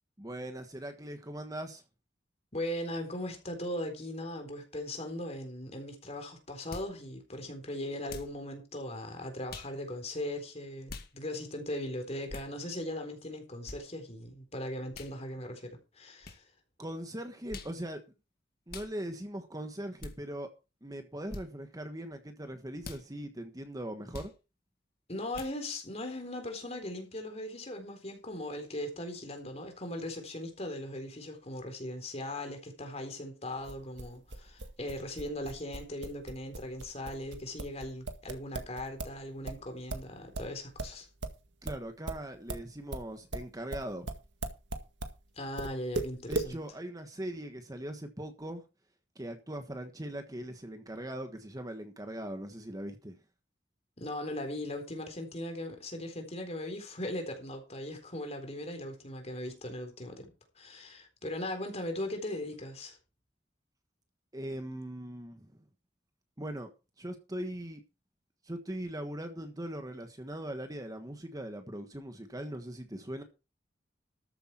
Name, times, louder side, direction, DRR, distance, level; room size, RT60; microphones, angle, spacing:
voice 1, 0.2-1.8 16.8-18.0 18.7-20.5 20.8-24.3 41.6-44.1 46.3-48.6 49.1-53.2 64.3-65.6 66.4-66.7 67.0-67.8 68.4-73.2, right 1 dB, 20° right, 1.4 m, -40 dB
voice 2, 2.5-16.5 25.1-41.1 45.4-46.6 54.0-63.0, left 1 dB, 35° left, 4.0 m, -39 dB
sound 1, 6.7-6.9 8.1-8.4 9.5-9.7 10.9-11.1 12.3-12.5 13.7-13.8 14.9-15.1 16.2-16.4 17.5-17.8 18.7-18.9 20.0-20.2 21.3-21.5 22.8-23.0 24.1-24.3 25.3-25.6, left 2 dB, 55° left, 2.1 m, -43 dB
sound 2, 33.6-39.2 39.4-45.2 45.6-46.5, right 2 dB, 75° right, 1.9 m, -38 dB
13.5 x 8.4 x 4.5 m
head